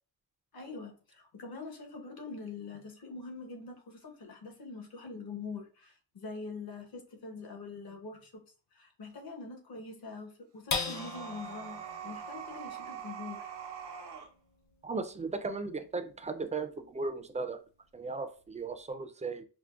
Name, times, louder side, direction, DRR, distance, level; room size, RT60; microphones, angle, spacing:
voice 1, 0.5-8.4 8.7-13.5, left 4 dB, 65° left, 1.0 m, -44 dB
sound 1, 10.7-17.4 17.9-18.0 18.4-18.9, left 4 dB, 45° left, 0.6 m, -42 dB
sound 2, 10.8-14.3, right 7 dB, 80° right, 0.8 m, -43 dB
voice 2, 14.8-17.6 17.9-19.4, right 4 dB, 20° right, 0.3 m, -36 dB
4.9 x 2.1 x 2.3 m
cardioid pair, 100°, 40 cm